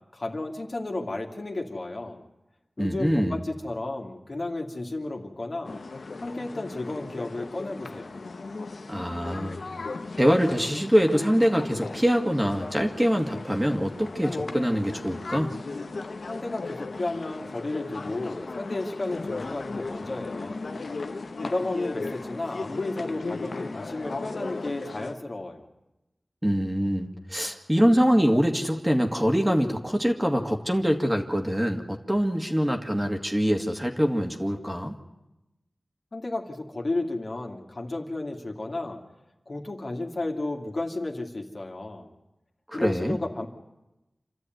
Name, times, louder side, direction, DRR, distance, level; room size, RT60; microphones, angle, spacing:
voice 1, 0.1-2.2 2.8-5.8 6.2-8.1 16.3-20.7 21.4-25.7 36.1-39.0 39.5-42.1 42.7-43.5, left 2 dB, 55° left, 2 dB, 2.5 m, -33 dB
voice 2, 2.8-3.4 8.9-9.6 10.2-15.6 26.4-34.9 42.7-43.2, equal, 10° right, 3 dB, 2.0 m, -24 dB
sound 1, 5.6-25.1, left 3 dB, 80° left, 1.0 m, -36 dB
27.5 x 13.0 x 9.4 m, 0.96 s
wide cardioid pair, 70°, 0 cm